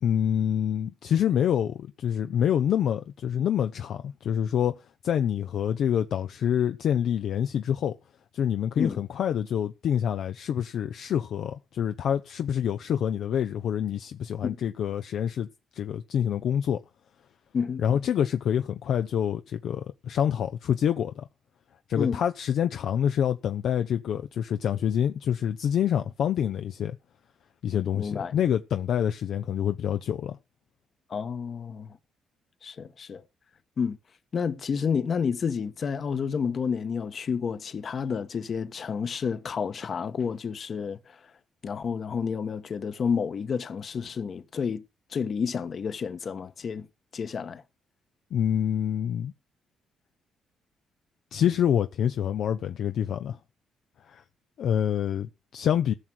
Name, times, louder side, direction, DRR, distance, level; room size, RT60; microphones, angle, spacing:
voice 1, 0.0-4.8 5.0-7.9 8.3-15.5 15.7-16.8 17.8-21.3 21.9-27.0 27.6-30.4 48.3-49.3 51.3-53.4 54.1-54.2 54.6-55.9, left 9 dB, 70° left, 0.6 m, -26 dB
voice 2, 27.9-28.3 31.1-32.0 32.6-33.2 33.8-34.0 34.3-41.2 41.6-44.8 45.1-46.9 47.1-47.6, left 6 dB, 50° left, 1.3 m, -30 dB
15.0 x 6.1 x 6.2 m
cardioid pair, 90°, 0 cm